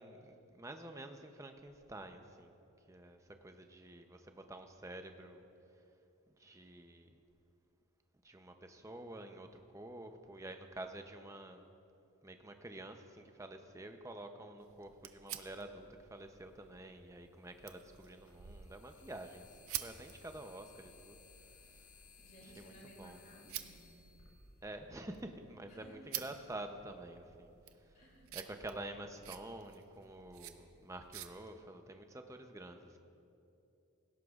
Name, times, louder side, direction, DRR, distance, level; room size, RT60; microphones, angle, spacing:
voice 1, 0.0-2.6 2.9-5.4 6.4-7.1 8.2-11.6 12.2-21.2 21.6-21.9 22.4-23.2 24.6-27.5 27.8-27.9 28.3-33.0, right 1 dB, 15° right, 6 dB, 0.6 m, -49 dB
sound 1, 14.6-31.3, right 11 dB, 70° right, 0.6 m, -50 dB
sound 2, 17.4-25.3, left 5 dB, 65° left, 2.2 m, -62 dB
voice 2, 22.2-23.8 25.7-26.3 27.9-28.3, right 1 dB, 35° left, -1 dB, 2.4 m, -58 dB
17.0 x 16.5 x 2.4 m, 2.8 s
head